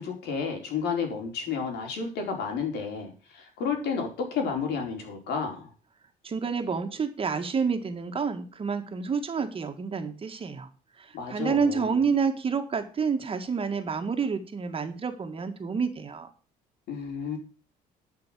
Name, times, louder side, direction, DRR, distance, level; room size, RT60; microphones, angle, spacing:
voice 1, 0.0-5.7 11.1-12.0 16.9-17.4, left 5 dB, 75° left, 3 dB, 4.4 m, -31 dB
voice 2, 6.2-10.7 11.0-16.3, right 5 dB, 35° right, 6 dB, 1.9 m, -29 dB
11.5 x 6.3 x 7.5 m, 0.37 s
cardioid pair, 110°, 17 cm